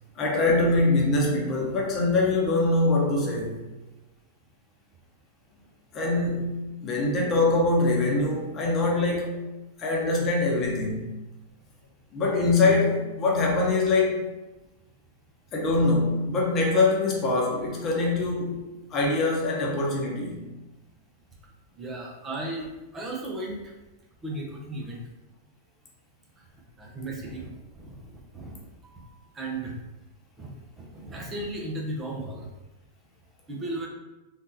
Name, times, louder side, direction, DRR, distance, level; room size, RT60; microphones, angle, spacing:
voice 1, 0.2-3.6 5.9-9.4 9.8-11.1 12.1-14.2 15.5-20.5, left 2 dB, 35° left, -2 dB, 0.9 m, -24 dB
voice 2, 21.8-22.7 22.9-23.6 24.2-25.0 26.8-27.9 28.3-29.1 29.3-29.7 30.4-30.5 30.8-32.5 33.5-33.9, right 2 dB, 25° right, -2 dB, 0.8 m, -35 dB
3.5 x 2.5 x 2.9 m, 1.1 s
hypercardioid pair, 105°, 0 cm